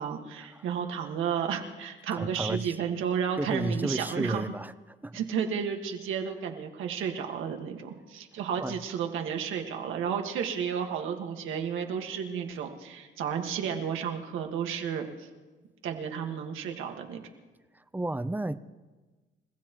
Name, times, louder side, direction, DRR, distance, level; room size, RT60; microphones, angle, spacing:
voice 1, 0.0-4.5 5.1-15.3 15.8-17.2, right 7 dB, 85° right, 4 dB, 1.7 m, -32 dB
voice 2, 2.1-2.8 3.4-4.7 5.0-5.2 8.6-8.8 17.7-18.6, right 2 dB, 10° right, 14 dB, 0.6 m, -32 dB
29.5 x 15.5 x 3.0 m, 1.3 s
cardioid pair, 90°, 20 cm